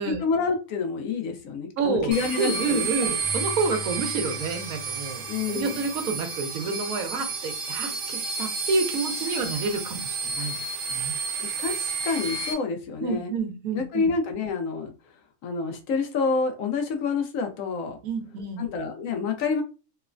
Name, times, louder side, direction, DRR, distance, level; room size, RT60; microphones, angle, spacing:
voice 1, 0.1-2.9 5.3-5.8 11.4-13.3 13.7-14.9 15.4-18.0 18.6-19.6, left 4 dB, 70° left, 4 dB, 0.9 m, -28 dB
voice 2, 1.8-10.6 10.9-11.1 13.0-14.1 18.0-18.6, right 4 dB, 80° right, 6 dB, 1.0 m, -29 dB
sound 1, 2.1-12.5, right 4 dB, 55° right, 0.6 m, -31 dB
Keyboard (musical), 3.2-6.7, left 6 dB, 50° left, 1.1 m, -43 dB
3.0 x 2.1 x 2.4 m, 0.32 s
omnidirectional pair, 1.5 m